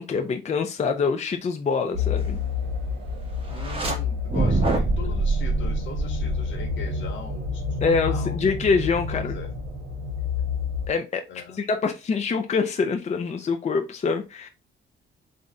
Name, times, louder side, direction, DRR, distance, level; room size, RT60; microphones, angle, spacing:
voice 1, 0.0-2.4 7.8-9.4 10.9-11.2 11.5-14.5, left 5 dB, 35° left, 0.6 m, -25 dB
sound 1, 1.9-10.9, left 4 dB, 50° right, 1.6 m, -29 dB
voice 2, 3.5-8.4 9.1-9.5 11.3-11.7, left 6 dB, 75° left, 1.3 m, -40 dB
sound 2, 3.5-4.0 4.3-6.9, right 3 dB, 30° right, 1.3 m, -25 dB
3.9 x 2.5 x 4.2 m
cardioid pair, 90°, 20 cm